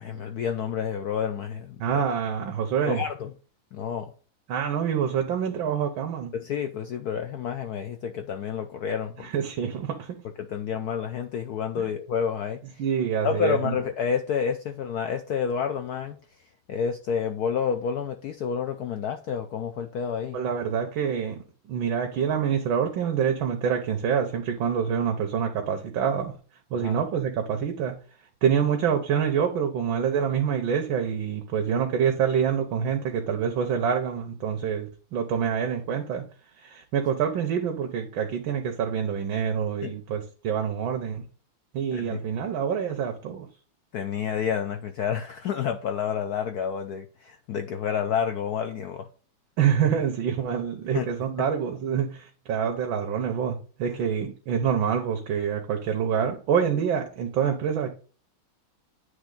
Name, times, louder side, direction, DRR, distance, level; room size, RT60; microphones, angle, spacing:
voice 1, 0.0-2.0 2.8-3.3 3.7-4.1 6.3-9.3 10.4-12.8 13.2-16.2 16.7-20.4 26.7-26.9 39.8-39.9 41.9-42.2 43.9-49.1 50.9-51.1, left 7 dB, 75° left, 0.9 m, -29 dB
voice 2, 1.8-3.0 4.5-6.3 9.2-10.2 11.8-11.9 12.8-13.8 20.3-26.3 26.7-28.0 28.4-36.3 36.6-41.2 41.7-43.5 49.6-57.9, right 7 dB, 80° right, 1.6 m, -26 dB
9.5 x 3.3 x 3.8 m
omnidirectional pair, 2.2 m